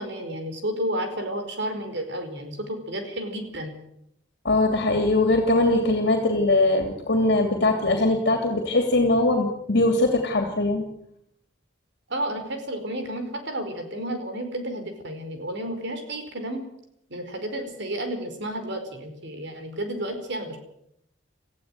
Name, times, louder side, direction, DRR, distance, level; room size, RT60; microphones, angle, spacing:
voice 1, 0.0-3.7 12.1-16.6 17.1-20.6, right 1 dB, 65° right, 6 dB, 5.0 m, -31 dB
voice 2, 4.4-10.8, left 2 dB, 60° left, 4 dB, 3.0 m, -21 dB
19.0 x 15.0 x 9.4 m, 0.75 s
head